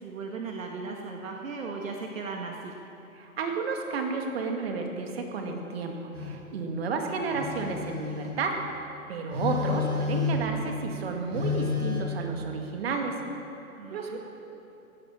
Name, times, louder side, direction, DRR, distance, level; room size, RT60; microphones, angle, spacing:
voice 1, 0.0-2.7 13.8-14.2, right 4 dB, 65° right, 1 dB, 1.7 m, -37 dB
voice 2, 3.1-8.8 9.1-13.2 13.9-14.2, right 4 dB, 45° right, 3 dB, 2.2 m, -32 dB
Telephone, 6.1-6.4 7.3-8.4 9.3-10.5 11.3-12.0, left 5 dB, 90° right, 5.0 m, -30 dB
18.0 x 11.0 x 7.4 m, 2.9 s
hypercardioid pair, 145°, 43 cm